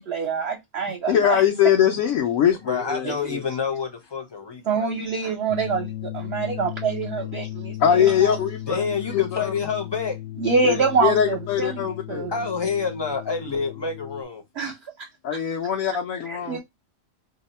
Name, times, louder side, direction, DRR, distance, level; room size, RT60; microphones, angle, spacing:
voice 1, 0.0-1.4 3.0-3.1 4.7-8.5 10.4-12.3 14.6-15.4 16.2-16.6, right 5 dB, 55° right, 0.9 m, -26 dB
voice 2, 1.1-3.4 7.8-9.5 10.6-12.3 15.2-16.6, left 9 dB, 85° left, 1.0 m, -22 dB
voice 3, 2.6-5.4 8.6-10.2 12.3-14.4, left 5 dB, 30° left, 0.5 m, -28 dB
sound 1, 5.5-14.2, left 14 dB, 60° left, 0.7 m, -36 dB
2.7 x 2.2 x 4.0 m
omnidirectional pair, 1.4 m